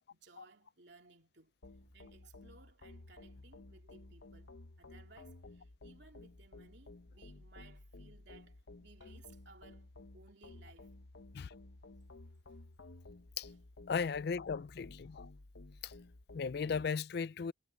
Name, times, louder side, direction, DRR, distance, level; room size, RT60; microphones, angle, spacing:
voice 1, 0.1-1.5 1.9-10.9 12.5-12.6 13.4-13.5, right 3 dB, 65° right, 2.8 m, -61 dB
sound 1, 1.6-16.9, left 2 dB, 75° left, 1.0 m, -54 dB
voice 2, 13.9-15.3 15.8-15.9 16.3-17.5, left 5 dB, 55° left, 0.4 m, -36 dB
head